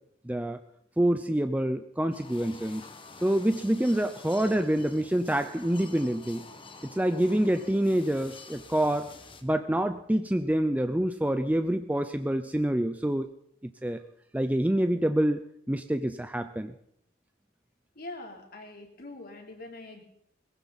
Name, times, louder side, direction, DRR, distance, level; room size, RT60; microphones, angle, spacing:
voice 1, 0.2-0.6 1.0-2.8 3.2-6.4 6.9-9.2 9.4-13.3 13.6-14.0 14.3-16.7, right 1 dB, 10° right, 9 dB, 0.5 m, -27 dB
sound 1, 2.1-9.4, left 4 dB, 25° left, 1.4 m, -48 dB
voice 2, 17.9-20.0, left 2 dB, 55° left, 2 dB, 3.3 m, -43 dB
21.0 x 15.5 x 4.1 m, 0.73 s
head